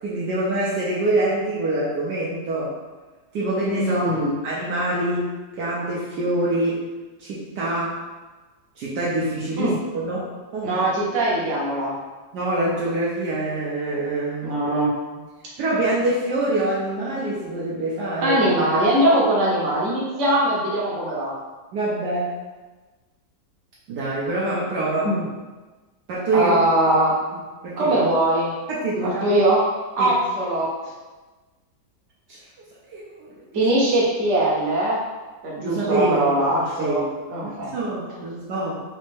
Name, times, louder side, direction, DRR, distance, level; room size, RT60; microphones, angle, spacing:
voice 1, 0.0-2.8 3.3-5.3 5.6-6.8 7.2-8.0 8.8-10.8 12.3-14.6 15.6-18.4 21.7-22.3 23.9-25.1 26.1-26.5 27.6-28.0 28.7-29.2 30.0-30.1 32.9-33.3 35.6-37.1 37.4-38.8, right 2 dB, 70° right, -6 dB, 1.2 m, -25 dB
voice 2, 3.8-4.3 9.6-9.8 10.6-12.0 14.4-15.0 18.2-21.3 25.0-25.2 26.3-27.2 27.8-28.6 29.0-29.7 30.0-30.7 33.5-35.0 35.4-37.0 37.3-37.7, right 1 dB, 45° right, -5 dB, 1.1 m, -21 dB
4.2 x 2.7 x 3.3 m, 1.3 s
omnidirectional pair, 2.0 m